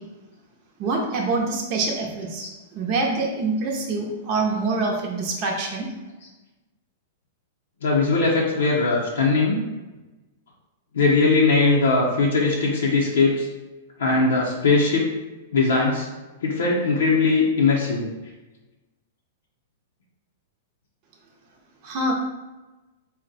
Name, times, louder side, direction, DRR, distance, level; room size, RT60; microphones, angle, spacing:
voice 1, 0.8-2.4 2.7-5.9 21.8-22.1, right 3 dB, 40° right, -1 dB, 0.7 m, -25 dB
voice 2, 7.8-9.6 10.9-13.5 14.0-15.0 15.5-16.0 16.4-18.1, left 3 dB, 85° left, -3 dB, 0.6 m, -20 dB
4.0 x 2.1 x 4.0 m, 1.1 s
hypercardioid pair, 120°, 0 cm